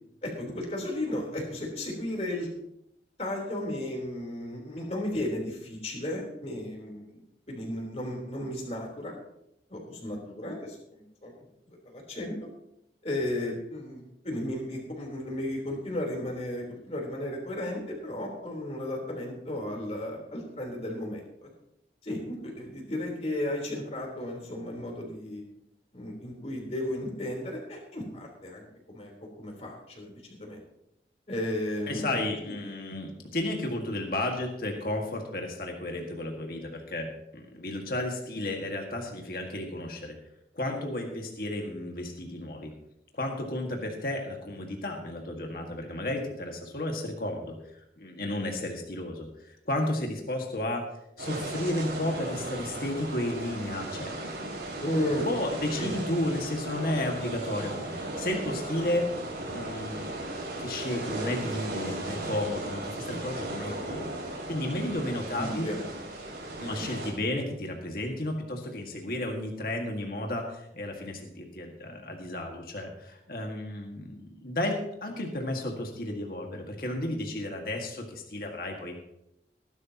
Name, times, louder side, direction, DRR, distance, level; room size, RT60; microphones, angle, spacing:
voice 1, 0.2-2.5 3.2-7.2 7.5-9.1 9.7-11.4 11.7-12.5 13.0-21.5 22.0-25.4 25.9-29.1 29.4-30.6 31.3-32.2 32.5-32.6 54.8-55.3 55.8-56.0 65.4-65.9 66.7-66.8, left 1 dB, 35° left, 0 dB, 3.7 m, -34 dB
voice 2, 31.9-40.2 40.5-42.7 43.1-47.6 48.0-50.8 51.2-54.5 55.2-59.1 59.5-60.3 60.6-65.7 66.6-79.0, left 1 dB, 55° left, 1 dB, 1.8 m, -33 dB
sound 1, 51.2-67.1, right 2 dB, 85° right, 5.0 m, -36 dB
19.0 x 11.5 x 2.9 m, 0.80 s
head